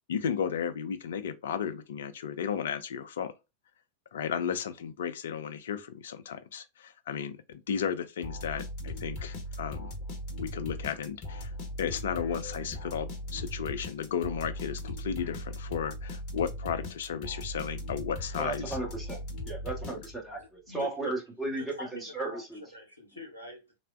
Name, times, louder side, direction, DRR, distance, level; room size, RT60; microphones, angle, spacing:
voice 1, 0.1-3.3 4.1-9.9 10.4-11.5 11.8-18.8, left 7 dB, 60° left, 0.4 m, -34 dB
sound 1, 8.2-20.4, left 1 dB, 40° left, 0.9 m, -39 dB
sound 2, 8.7-17.4, right 4 dB, 20° right, 1.1 m, -57 dB
voice 2, 18.4-22.6, right 2 dB, 5° right, 1.1 m, -35 dB
voice 3, 20.4-21.2 21.6-23.8, left 2 dB, 80° left, 0.8 m, -45 dB
3.3 x 2.1 x 2.3 m
figure-of-eight pair, 90°, 0 cm